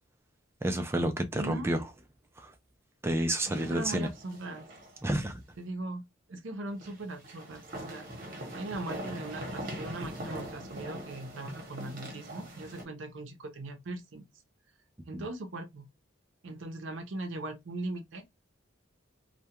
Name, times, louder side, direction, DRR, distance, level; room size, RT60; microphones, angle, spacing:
voice 1, 0.6-1.8 2.4-2.5 3.0-4.1 5.0-5.4 15.1-15.2, right 1 dB, 10° right, 0.4 m, -30 dB
voice 2, 1.3-1.8 3.5-4.6 5.6-14.3 15.1-15.9 16.4-18.4, right 2 dB, 70° right, 0.6 m, -40 dB
sound 1, 3.5-5.0 5.3-5.4 6.8-12.8, equal, 45° right, 0.9 m, -42 dB
2.3 x 2.2 x 2.8 m
head